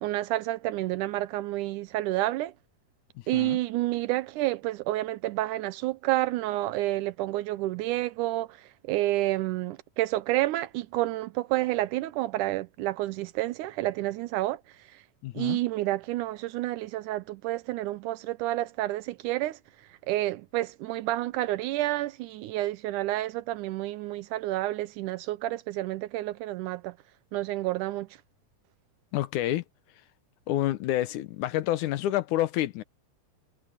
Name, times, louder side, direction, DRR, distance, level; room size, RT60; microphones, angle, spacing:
voice 1, 0.0-2.5 3.3-15.0 15.3-19.6 19.9-27.0 27.3-28.1, right 16 dB, 85° right, 2.2 m, -29 dB
voice 2, 15.2-15.6 29.1-29.6 30.5-32.8, left 14 dB, 80° left, 2.3 m, -28 dB
omnidirectional pair, 3.5 m